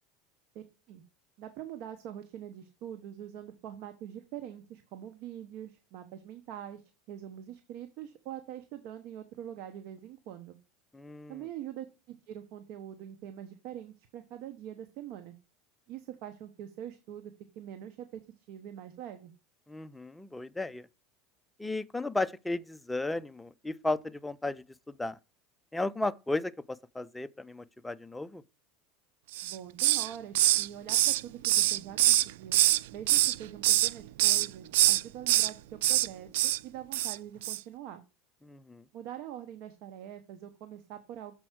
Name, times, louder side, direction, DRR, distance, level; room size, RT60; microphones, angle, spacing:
voice 1, 0.5-1.0 1.4-6.8 7.1-10.6 11.3-15.3 15.9-18.2 18.5-19.3 29.4-32.6 32.9-38.0 38.9-41.3, right 10 dB, 55° right, 1.0 m, -44 dB
voice 2, 10.9-11.4 19.7-20.9 21.6-24.6 25.0-25.2 25.7-28.4 38.4-38.8, left 2 dB, 5° left, 0.4 m, -34 dB
Hiss, 29.3-30.1 30.3-32.8 33.1-33.9 34.2-34.5 34.7-35.5 35.8-36.1 36.3-36.6 36.9-37.2 37.4-37.6, right 15 dB, 85° right, 0.4 m, -24 dB
7.0 x 4.5 x 6.1 m
supercardioid pair, 135°, 0 cm